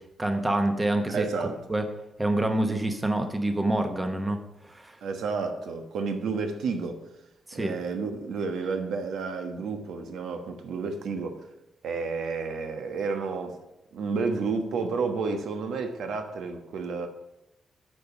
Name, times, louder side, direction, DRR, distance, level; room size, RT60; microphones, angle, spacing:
voice 1, 0.2-1.3 1.7-1.8 2.2-4.4 4.6-5.0 7.5-7.7, right 1 dB, 15° right, 6 dB, 0.9 m, -26 dB
voice 2, 1.1-1.6 5.0-7.0 7.5-11.4 11.8-13.6 13.9-17.1, right 4 dB, 85° right, 6 dB, 1.2 m, -31 dB
9.1 x 5.2 x 7.1 m, 0.91 s
wide cardioid pair, 160°, 0 cm